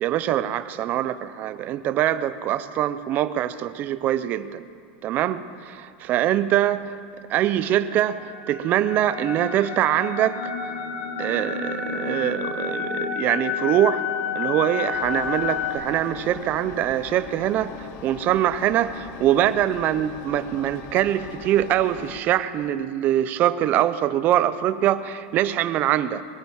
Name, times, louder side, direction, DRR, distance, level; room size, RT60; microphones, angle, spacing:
voice 1, 0.0-4.6 5.0-7.0 7.3-10.5 11.2-14.0 14.3-26.2, right 12 dB, 30° right, 14 dB, 0.5 m, -23 dB
sound 1, 8.0-15.8, left 7 dB, 65° left, 1.6 m, -30 dB
Engine, 14.9-22.2, left 8 dB, 35° left, 0.9 m, -40 dB
21.5 x 9.1 x 7.1 m, 2.3 s
supercardioid pair, 165°, 6 cm